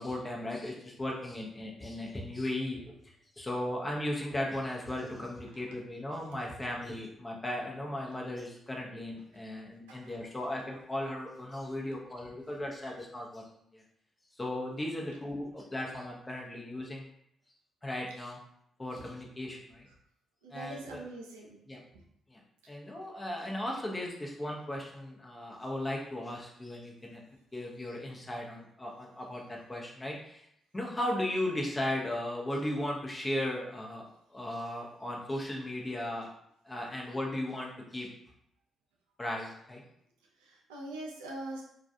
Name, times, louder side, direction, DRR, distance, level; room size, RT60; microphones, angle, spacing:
voice 1, 0.0-2.8 3.4-13.4 13.7-13.8 14.4-17.0 17.8-18.4 18.8-19.9 20.5-21.0 21.7-21.8 22.3-22.4 22.7-27.2 27.5-30.5 30.7-36.3 36.6-38.1 39.2-39.8, left 1 dB, 25° left, -2 dB, 0.7 m, -36 dB
voice 2, 9.9-10.4 12.2-12.3 20.4-21.6 21.9-22.0 22.6-22.7 40.4-41.6, right 2 dB, 85° right, -1 dB, 0.4 m, -43 dB
2.3 x 2.2 x 2.6 m, 0.74 s
hypercardioid pair, 40°, 0 cm